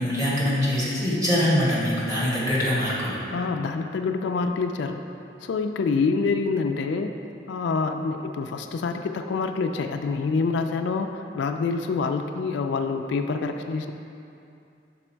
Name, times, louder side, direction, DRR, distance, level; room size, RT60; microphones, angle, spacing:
voice 1, 0.0-3.2, equal, 20° right, -7 dB, 1.3 m, -23 dB
voice 2, 3.3-5.0 5.4-7.1 7.5-13.9, left 4 dB, 75° left, 6 dB, 0.3 m, -26 dB
6.1 x 4.1 x 4.4 m, 2.6 s
head